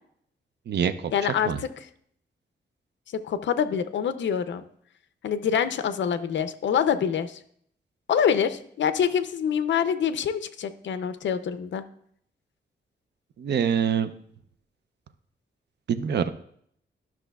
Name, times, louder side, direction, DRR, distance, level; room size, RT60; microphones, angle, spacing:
voice 1, 1.1-1.9 3.1-4.6 5.2-7.4 8.1-11.8, left 7 dB, 70° left, 11 dB, 0.5 m, -26 dB
voice 2, 13.4-14.1 15.9-16.3, right 7 dB, 60° right, 11 dB, 0.5 m, -24 dB
12.5 x 6.0 x 2.3 m, 0.67 s
wide cardioid pair, 130°, 20 cm